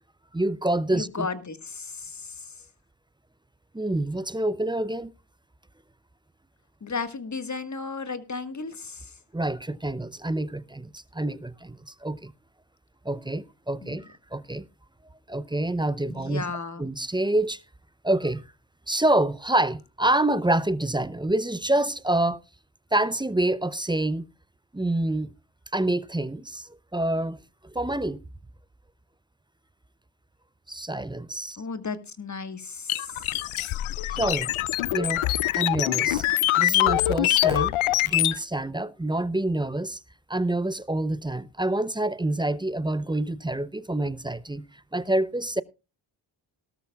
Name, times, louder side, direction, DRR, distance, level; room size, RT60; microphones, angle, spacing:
voice 1, 0.3-1.3 3.7-5.1 9.3-12.3 13.0-14.7 15.3-16.4 16.8-17.6 18.0-18.4 18.9-22.4 22.9-24.3 24.7-25.3 25.7-27.4 27.7-28.2 30.7-31.6 34.1-34.5 34.9-35.2 35.5-36.2 36.6-37.7 38.0-40.0 40.3-44.6 44.9-45.6, right 1 dB, 10° right, 0.5 m, -27 dB
voice 2, 0.9-2.5 6.8-9.1 13.8-14.0 16.1-16.9 31.6-33.3, left 4 dB, 35° left, 1.5 m, -34 dB
sound 1, 32.9-38.4, left 15 dB, 80° left, 0.6 m, -24 dB
18.0 x 13.0 x 2.3 m
cardioid pair, 50°, 49 cm